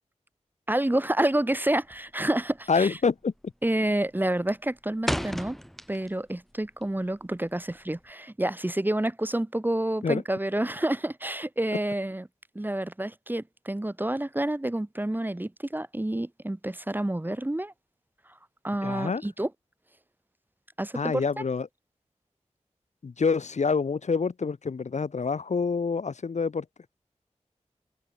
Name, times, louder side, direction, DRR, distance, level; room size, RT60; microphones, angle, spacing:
voice 1, 0.7-3.0 3.6-5.6 5.9-12.3 12.5-17.7 18.6-19.5 20.8-21.2, right 1 dB, 15° right, 1.0 m, -28 dB
sound 1, 1.8-2.2 2.5-2.9 3.2-3.7 4.0-6.3 6.6-8.1, equal, ahead, 1.7 m, -33 dB
voice 2, 2.7-3.3 10.0-10.2 18.8-19.2 20.9-21.7 23.0-26.6, left 5 dB, 70° left, 1.0 m, -27 dB
wide cardioid pair, 75°, 12 cm